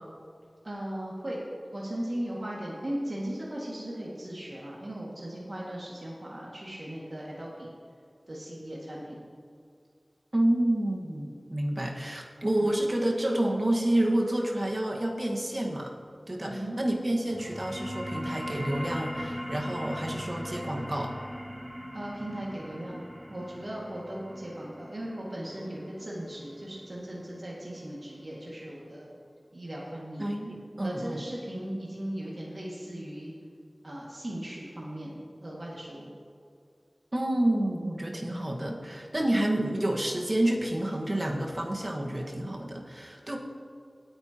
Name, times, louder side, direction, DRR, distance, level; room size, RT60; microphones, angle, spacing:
voice 1, 0.6-1.4 1.7-7.7 8.3-9.2 12.6-12.7 16.5-16.8 21.9-23.0 23.3-29.2 29.5-30.3 30.8-33.3 33.8-36.1, right 1 dB, 55° right, -6 dB, 2.1 m, -37 dB
voice 2, 10.3-15.9 16.3-21.1 30.2-31.2 37.1-43.4, right 1 dB, 40° right, 0 dB, 1.6 m, -29 dB
sound 1, 17.2-28.3, equal, 5° right, 2.0 m, -40 dB
19.0 x 9.1 x 3.0 m, 2.3 s
wide cardioid pair, 60°, 0 cm